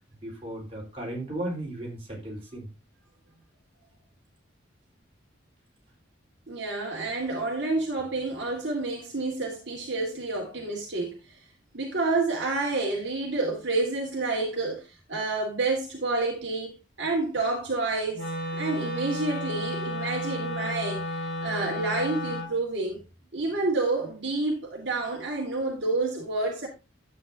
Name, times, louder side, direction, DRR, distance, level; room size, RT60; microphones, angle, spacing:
voice 1, 0.2-2.7, right 1 dB, 30° right, 4.2 m, -35 dB
voice 2, 6.5-11.1 11.7-23.0 23.3-26.7, right 3 dB, 65° right, 2.0 m, -29 dB
Wind instrument woodwind instrument, 18.1-22.5, left 1 dB, 65° left, 5.1 m, -32 dB
11.5 x 8.4 x 2.7 m
head